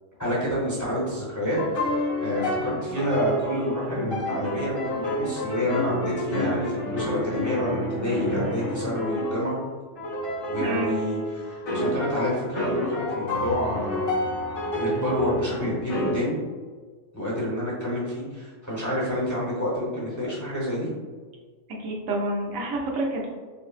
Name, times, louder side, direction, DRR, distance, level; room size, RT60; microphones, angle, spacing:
voice 1, 0.2-9.6 10.4-14.0 14.7-16.4 17.1-20.9, equal, 15° left, -7 dB, 0.7 m, -28 dB
sound 1, 1.5-9.5 10.0-16.1, left 1 dB, 80° left, 1.5 m, -29 dB
voice 2, 10.6-11.0 21.8-23.3, right 1 dB, 85° right, -1 dB, 1.1 m, -28 dB
5.0 x 2.0 x 2.4 m, 1.5 s
omnidirectional pair, 1.3 m